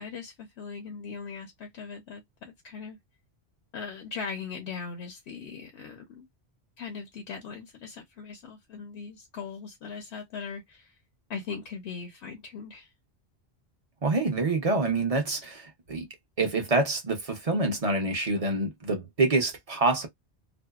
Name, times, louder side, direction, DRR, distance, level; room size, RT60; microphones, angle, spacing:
voice 1, 0.0-3.0 3.7-6.3 6.8-10.9 11.3-12.9, left 5 dB, 75° left, 0.9 m, -39 dB
voice 2, 14.0-16.1 16.4-20.1, right 3 dB, 40° right, 0.7 m, -26 dB
2.6 x 2.1 x 2.3 m
omnidirectional pair, 1.1 m